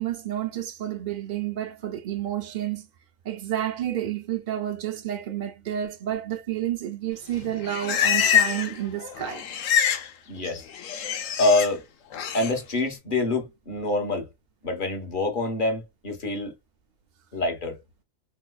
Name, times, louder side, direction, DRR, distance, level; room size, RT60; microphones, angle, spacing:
voice 1, 0.0-2.9 3.2-9.4, right 11 dB, 80° right, 0.4 m, -30 dB
Livestock farm animals working animals, 7.3-8.8 9.0-10.1 10.4-11.7 12.1-12.5, left 9 dB, 70° left, 1.0 m, -25 dB
voice 2, 10.3-10.6 11.4-11.8 12.3-14.3 14.6-16.5 17.3-17.8, left 2 dB, 40° left, 1.0 m, -25 dB
3.4 x 3.0 x 2.2 m
omnidirectional pair, 1.4 m